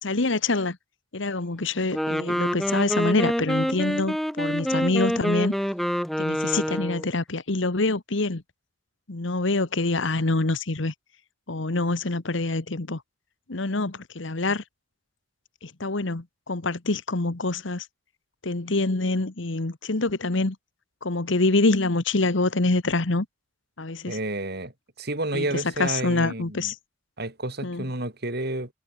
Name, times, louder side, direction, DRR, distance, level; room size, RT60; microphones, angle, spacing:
voice 1, 0.0-0.8 1.1-5.5 6.2-8.4 9.1-10.9 11.5-13.0 13.5-14.6 15.6-17.8 18.4-20.6 21.0-23.3 23.8-24.2 25.3-26.7 27.6-27.9, left 2 dB, 65° left, 1.3 m, -25 dB
Wind instrument woodwind instrument, 1.8-7.1, equal, ahead, 0.7 m, -26 dB
voice 2, 24.1-24.7 25.0-26.7 27.2-28.7, right 2 dB, 55° right, 4.4 m, -30 dB
head